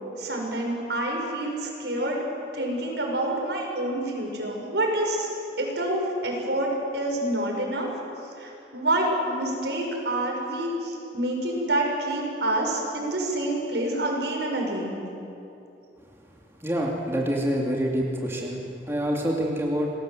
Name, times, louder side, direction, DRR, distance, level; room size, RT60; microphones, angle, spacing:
voice 1, 0.2-2.2 2.5-5.3 5.6-7.9 8.4-15.0, right 1 dB, 80° right, 0 dB, 6.2 m, -27 dB
voice 2, 16.6-18.6 18.9-19.9, equal, 15° right, -1 dB, 2.7 m, -26 dB
28.0 x 20.5 x 8.0 m, 2.9 s
head